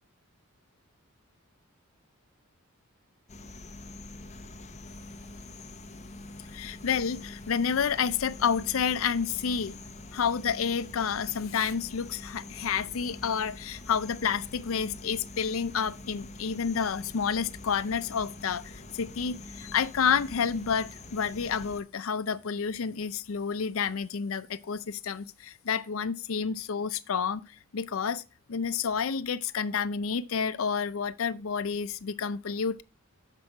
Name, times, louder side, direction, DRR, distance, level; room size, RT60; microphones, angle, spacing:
sound 1, 3.3-21.8, left 2 dB, 30° left, 0.8 m, -45 dB
voice 1, 6.5-9.8 10.1-27.4 27.7-28.2 28.5-32.8, left 6 dB, 70° left, 0.5 m, -29 dB
7.5 x 5.3 x 4.6 m
head